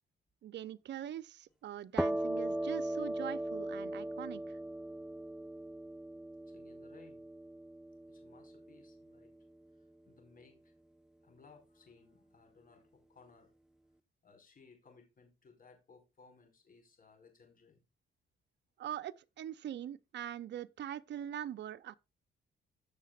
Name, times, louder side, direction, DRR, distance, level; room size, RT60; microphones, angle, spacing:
voice 1, 0.4-4.6 18.8-22.0, right 10 dB, 65° right, 0.8 m, -43 dB
sound 1, 2.0-9.4, right 1 dB, 5° right, 0.4 m, -39 dB
voice 2, 6.5-7.2 8.1-9.3 9.7-10.7 11.2-13.5 14.2-17.8, left 4 dB, 45° left, 5.1 m, -62 dB
15.5 x 6.6 x 2.4 m
cardioid pair, 90°, 20 cm